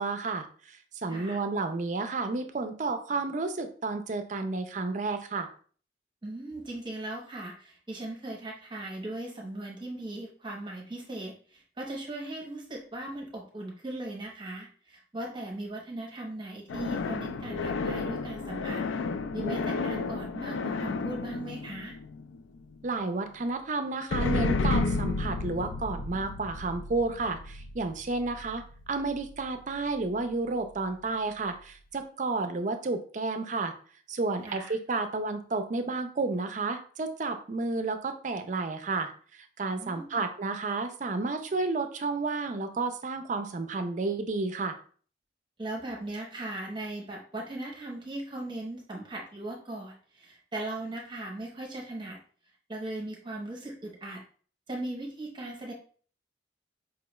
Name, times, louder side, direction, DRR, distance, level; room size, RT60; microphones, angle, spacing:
voice 1, 0.0-5.5 22.8-33.7 34.1-44.8, right 3 dB, 40° right, 7 dB, 0.4 m, -31 dB
voice 2, 1.1-1.4 6.2-18.8 19.3-22.0 34.4-34.7 39.7-40.2 45.6-52.2 52.7-54.2 54.7-55.7, right 1 dB, 25° right, -1 dB, 0.8 m, -38 dB
sound 1, 16.7-22.6 24.1-29.4, left 3 dB, 85° left, 0.3 m, -32 dB
4.8 x 2.3 x 3.0 m, 0.43 s
head